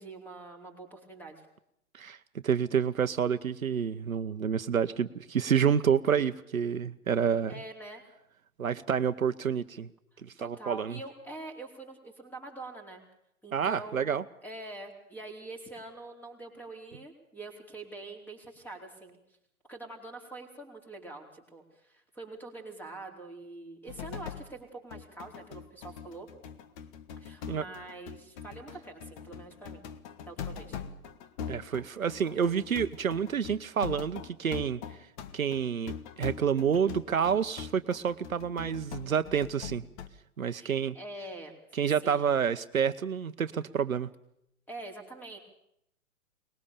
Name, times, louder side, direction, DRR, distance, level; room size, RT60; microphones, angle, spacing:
voice 1, 0.0-1.5 7.5-8.0 10.4-13.0 13.4-19.2 19.7-26.3 27.2-29.8 30.3-30.8 40.5-41.5 41.8-42.3 44.7-45.4, right 2 dB, 5° left, 3 dB, 4.5 m, -45 dB
voice 2, 2.4-7.5 8.6-9.9 10.2-11.0 13.5-14.2 27.5-27.6 31.5-35.1 35.3-39.8 40.4-41.0 41.7-44.1, right 7 dB, 70° right, 11 dB, 1.1 m, -29 dB
sound 1, 23.9-24.5 24.9-40.1, left 7 dB, 30° left, 1.6 m, -42 dB
23.5 x 20.5 x 7.0 m, 0.77 s
figure-of-eight pair, 120°, 43 cm